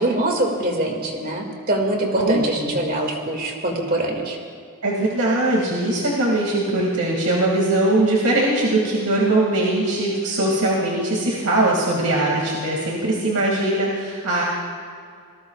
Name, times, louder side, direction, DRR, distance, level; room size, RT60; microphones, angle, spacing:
voice 1, 0.0-4.4, right 1 dB, 40° right, 1 dB, 2.3 m, -23 dB
voice 2, 2.1-2.5 4.8-14.4, right 2 dB, 85° right, -3 dB, 2.4 m, -21 dB
27.0 x 19.5 x 2.4 m, 2.2 s
head